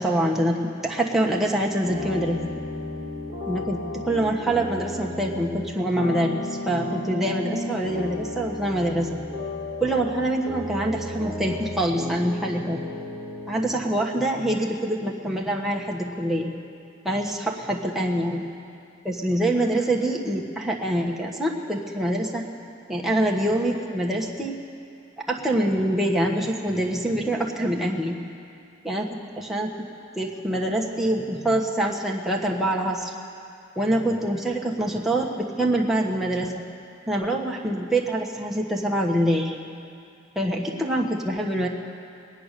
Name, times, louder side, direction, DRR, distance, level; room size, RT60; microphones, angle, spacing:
voice 1, 0.0-2.4 3.5-9.2 9.8-12.8 13.5-16.5 17.0-18.4 19.0-22.4 22.9-24.5 25.3-28.2 28.8-29.1 29.5-29.7 30.1-33.1 33.8-36.6 37.1-39.6 40.3-41.7, right 1 dB, ahead, -3 dB, 1.2 m, -25 dB
sound 1, 1.8-13.6, left 1 dB, 75° left, 2.9 m, -33 dB
21.5 x 8.8 x 6.6 m, 2.5 s
head